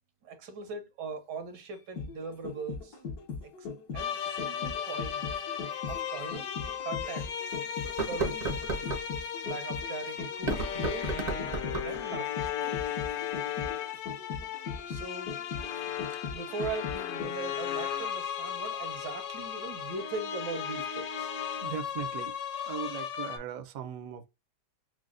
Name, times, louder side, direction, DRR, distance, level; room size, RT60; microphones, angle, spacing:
voice 1, 0.2-3.0 3.4-3.7 3.9-5.2 5.9-6.5 6.8-7.3 8.1-8.6 9.4-11.5 11.8-12.8 14.9-15.4 16.1-21.3, right 4 dB, 80° right, 1.6 m, -40 dB
sound 1, 1.7-17.6 17.9-18.0, left 5 dB, 70° left, 1.3 m, -39 dB
sound 2, 4.0-23.4, left 9 dB, 90° left, 1.3 m, -36 dB
sound 3, 5.9-6.0 6.6-6.7 7.8-9.1 10.3-12.0, right 3 dB, 45° right, 0.5 m, -33 dB
voice 2, 21.6-22.4 22.6-24.3, right 7 dB, 65° right, 0.8 m, -38 dB
6.1 x 2.1 x 2.4 m
omnidirectional pair, 1.9 m